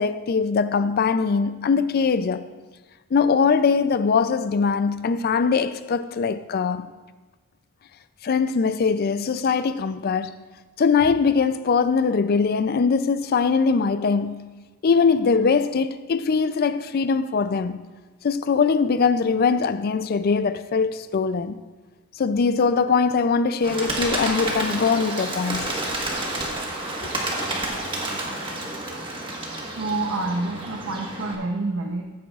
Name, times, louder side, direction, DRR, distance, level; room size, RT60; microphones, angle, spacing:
voice 1, 0.0-2.5 3.1-6.9 8.2-10.4 10.8-14.4 14.8-17.8 18.2-21.6 22.1-25.8 26.1-26.2, left 5 dB, 45° left, 0.4 m, -21 dB
Bird, 23.6-31.3, right 1 dB, 25° right, 1.4 m, -30 dB
voice 2, 29.8-32.0, right 2 dB, 60° right, 0.7 m, -27 dB
15.0 x 8.7 x 2.4 m
head